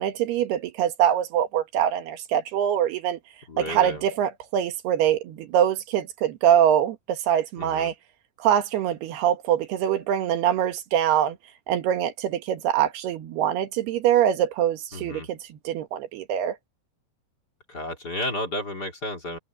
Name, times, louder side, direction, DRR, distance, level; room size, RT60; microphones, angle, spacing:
voice 1, 0.0-3.2 3.6-7.9 8.4-11.4 11.7-15.4 15.7-16.6, right 10 dB, 85° right, 3.6 m, -23 dB
voice 2, 3.5-4.0 7.6-7.9 14.9-15.3 17.7-19.4, left 1 dB, 25° left, 3.2 m, -32 dB
omnidirectional pair, 4.5 m